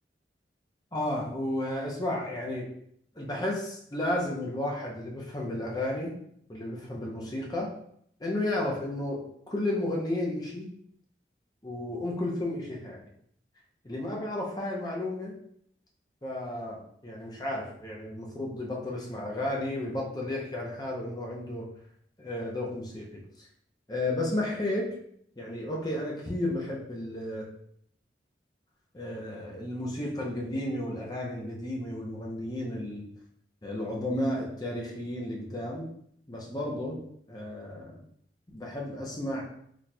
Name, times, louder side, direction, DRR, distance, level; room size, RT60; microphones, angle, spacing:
voice 1, 0.9-2.7 3.2-6.1 6.5-7.7 8.2-10.7 11.6-13.0 13.9-15.4 16.2-21.7 22.2-23.1 23.4-23.5 23.9-25.0 25.4-27.5 28.9-33.1 33.6-35.9 36.3-38.0 38.5-39.4, left 1 dB, 20° left, -2 dB, 0.6 m, -33 dB
4.0 x 3.0 x 2.2 m, 0.68 s
head